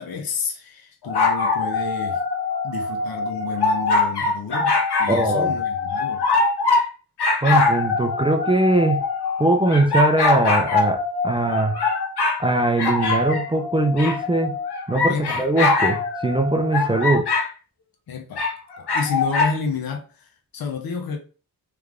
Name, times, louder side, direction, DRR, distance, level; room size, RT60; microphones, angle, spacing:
voice 1, 0.0-2.2 2.6-6.3 15.1-15.4 18.1-18.5 18.8-21.2, left 5 dB, 65° left, 0.9 m, -30 dB
sound 1, 1.0-6.9 7.2-12.4 12.8-17.5 18.4-19.5, left 3 dB, 80° left, 1.2 m, -22 dB
voice 2, 5.1-5.5 7.4-9.0 9.4-11.7 12.4-14.5 14.9-17.3, right 2 dB, 15° right, 0.5 m, -21 dB
3.4 x 3.4 x 3.6 m
wide cardioid pair, 170°, 39 cm